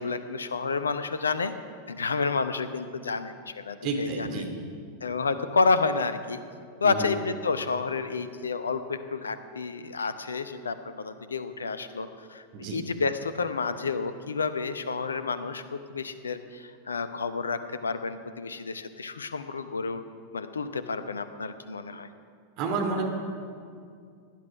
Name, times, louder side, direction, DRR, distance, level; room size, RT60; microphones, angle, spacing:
voice 1, 0.0-1.5 1.9-4.4 5.0-6.4 6.8-20.0 20.3-22.1, left 4 dB, 75° left, 11 dB, 0.8 m, -30 dB
voice 2, 3.8-4.5 6.8-7.1 12.5-12.8 22.6-23.0, right 4 dB, 45° right, 3 dB, 2.8 m, -30 dB
18.0 x 11.0 x 5.8 m, 2.3 s
figure-of-eight pair, 90°, 0 cm